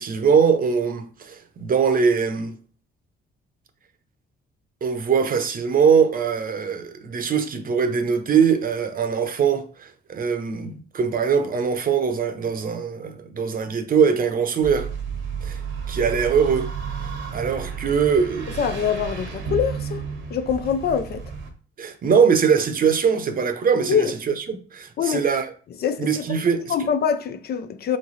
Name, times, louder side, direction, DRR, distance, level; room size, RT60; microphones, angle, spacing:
voice 1, 0.0-2.5 4.8-14.9 15.4-15.6 15.9-16.7 17.0-18.5 21.8-25.5 26.0-26.9, right 6 dB, 45° right, 0.7 m, -22 dB
sound 1, 14.6-21.5, right 6 dB, 75° right, 1.0 m, -32 dB
voice 2, 18.6-20.0 20.3-21.2 23.9-24.1 25.0-25.3 25.8-26.2 26.7-28.0, left 7 dB, 55° left, 0.5 m, -24 dB
3.7 x 3.2 x 4.0 m
cardioid pair, 90°, 20 cm